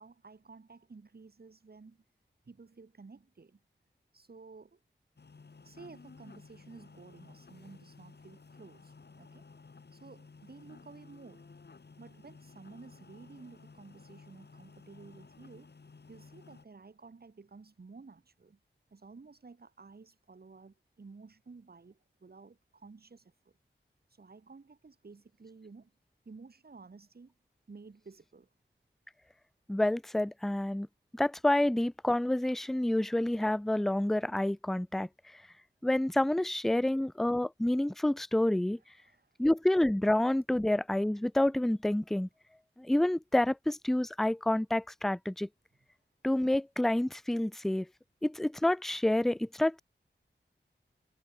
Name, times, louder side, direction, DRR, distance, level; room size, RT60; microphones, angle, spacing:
voice 1, 0.0-2.0 2.4-3.6 4.1-4.8 5.6-9.4 9.9-11.5 12.0-15.7 16.1-18.6 18.9-23.5 24.1-25.9 26.2-27.3 27.7-28.5 38.7-39.4, right 4 dB, 50° right, 1.2 m, -53 dB
sound 1, 5.2-16.6, left 4 dB, 55° left, 1.1 m, -55 dB
voice 2, 29.7-30.9 31.1-35.1 35.8-38.8 39.4-42.3 42.8-45.5 46.2-47.9 48.2-49.8, left 1 dB, ahead, 0.3 m, -28 dB
wide cardioid pair, 70°, 20 cm